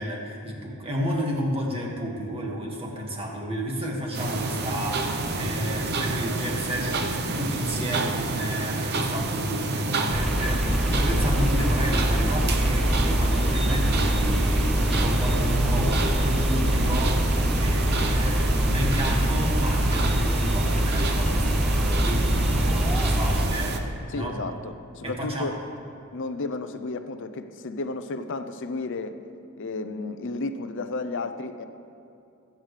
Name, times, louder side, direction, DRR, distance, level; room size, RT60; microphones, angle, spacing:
voice 1, 0.0-17.2 17.6-23.7 24.1-24.4 25.0-25.5, equal, 25° right, -2 dB, 1.9 m, -31 dB
sound 1, 4.1-23.8, right 3 dB, 50° right, 0.8 m, -29 dB
sound 2, 10.1-23.5, equal, ahead, 0.5 m, -24 dB
voice 2, 24.1-25.6 26.1-29.2 29.6-31.6, left 3 dB, 60° left, 9 dB, 0.6 m, -32 dB
21.0 x 8.9 x 3.3 m, 2.6 s
head